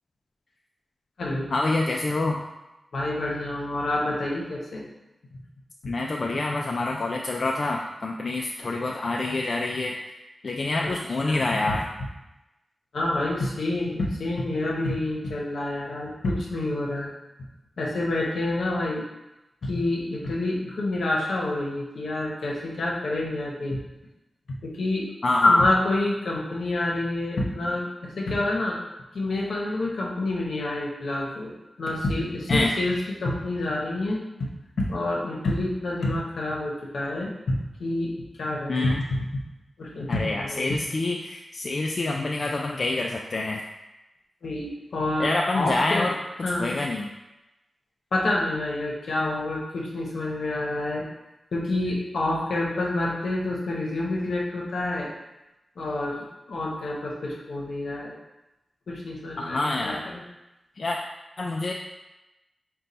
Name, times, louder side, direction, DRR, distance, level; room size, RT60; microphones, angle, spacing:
voice 1, 1.5-2.4 5.9-10.1 10.4-11.8 25.2-25.7 32.5-32.7 38.7-39.0 40.1-43.6 45.2-47.1 59.4-60.1 60.8-61.0 61.4-61.7, left 2 dB, 55° left, 0 dB, 0.3 m, -26 dB
voice 2, 2.9-4.9 11.2-11.7 12.9-17.1 17.8-19.0 19.6-23.8 24.6-25.1 25.5-28.8 29.1-31.5 31.8-34.5 34.8-38.9 39.8-40.7 44.4-45.3 45.5-46.1 46.4-46.8 48.1-51.0 51.5-55.1 55.8-58.1 58.9-60.2, left 2 dB, 80° left, -2 dB, 0.8 m, -28 dB
4.1 x 2.2 x 4.0 m, 0.98 s
cardioid pair, 65°, 0 cm